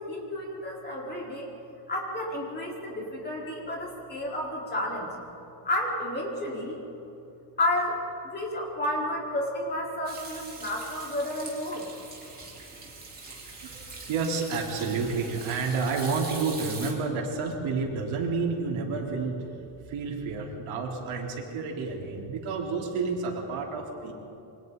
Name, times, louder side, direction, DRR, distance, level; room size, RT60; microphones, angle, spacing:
voice 1, 0.0-1.5 1.9-5.1 5.6-6.8 7.6-11.8, left 1 dB, 20° left, -3 dB, 4.3 m, -31 dB
Hands / Sink (filling or washing), 10.0-16.9, right 3 dB, 20° right, 3.9 m, -42 dB
voice 2, 13.6-19.5 19.9-24.1, right 4 dB, 80° right, -1 dB, 4.2 m, -30 dB
28.5 x 24.5 x 4.1 m, 2.9 s
cardioid pair, 175°, 48 cm